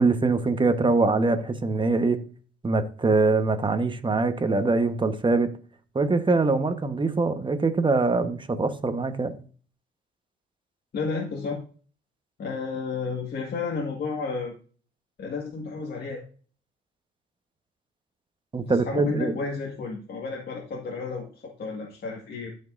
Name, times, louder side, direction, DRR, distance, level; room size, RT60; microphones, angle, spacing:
voice 1, 0.0-2.2 2.6-5.5 5.9-9.3 18.5-19.3, right 3 dB, 25° right, 1.2 m, -23 dB
voice 2, 10.9-11.6 12.4-14.5 15.2-16.2 18.7-22.5, left 4 dB, 55° left, 1.8 m, -32 dB
13.5 x 5.4 x 2.6 m
cardioid pair, 90°, 20 cm